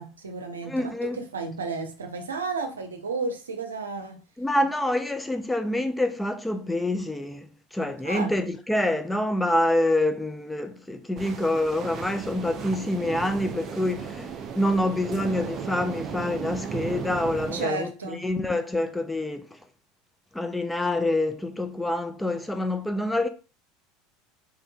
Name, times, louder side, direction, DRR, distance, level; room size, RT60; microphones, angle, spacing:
voice 1, 0.0-4.2 8.0-8.4 17.5-18.3, right 4 dB, 90° right, 0.6 m, -33 dB
voice 2, 0.6-1.2 4.4-14.3 14.5-19.6 20.3-23.3, left 1 dB, 10° left, 0.5 m, -26 dB
sound 1, 11.2-17.7, right 7 dB, 40° right, 0.6 m, -35 dB
3.6 x 3.2 x 2.3 m
hypercardioid pair, 80°, 0 cm